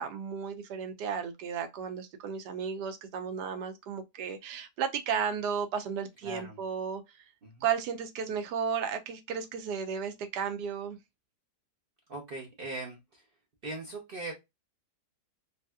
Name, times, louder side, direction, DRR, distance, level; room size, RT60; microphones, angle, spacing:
voice 1, 0.0-7.0 7.6-11.0, right 7 dB, 80° right, 1.2 m, -34 dB
voice 2, 6.2-6.6 7.4-7.6 12.1-13.2 13.6-14.3, right 2 dB, 50° right, 0.7 m, -40 dB
3.2 x 2.7 x 2.2 m
omnidirectional pair, 1.8 m